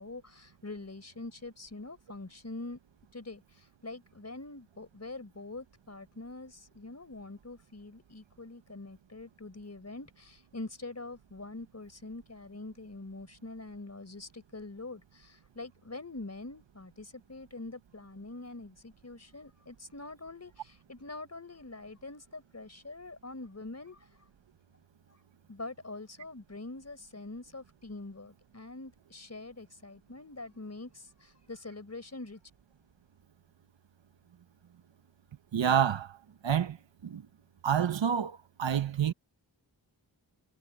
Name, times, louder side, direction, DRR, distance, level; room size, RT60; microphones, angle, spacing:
voice 1, 0.0-2.8 3.1-24.1 25.5-32.5, left 2 dB, 35° left, 5.1 m, -44 dB
voice 2, 35.5-36.2 36.4-36.8 37.0-37.3 37.6-39.1, right 8 dB, 75° right, 1.3 m, -28 dB
cardioid pair, 55°, 45 cm